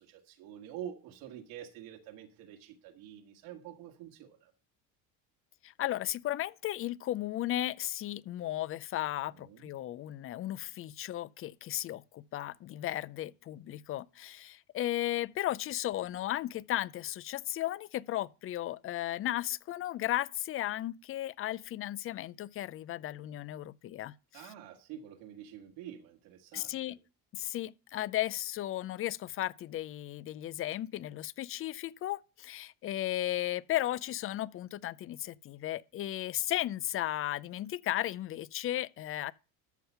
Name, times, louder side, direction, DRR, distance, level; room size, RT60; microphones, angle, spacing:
voice 1, 0.0-4.5 9.3-9.7 24.3-27.0, right 10 dB, 85° right, 1.9 m, -47 dB
voice 2, 5.6-24.2 26.5-27.0 27.3-39.3, left 14 dB, 35° left, 0.4 m, -35 dB
13.0 x 5.6 x 5.6 m
cardioid pair, 110°, 39 cm